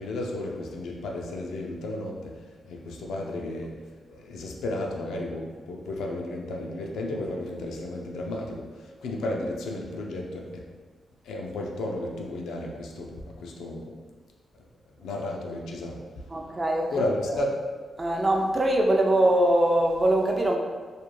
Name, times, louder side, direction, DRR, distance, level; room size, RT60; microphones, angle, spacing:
voice 1, 0.0-2.4 2.7-3.7 4.1-10.6 11.2-14.0 15.0-16.0 16.9-17.6, left 1 dB, 85° left, 0 dB, 0.3 m, -33 dB
voice 2, 16.3-16.9 18.0-20.6, right 1 dB, 30° right, 1 dB, 0.4 m, -22 dB
2.3 x 2.0 x 3.0 m, 1.5 s
cardioid pair, 60°, 0 cm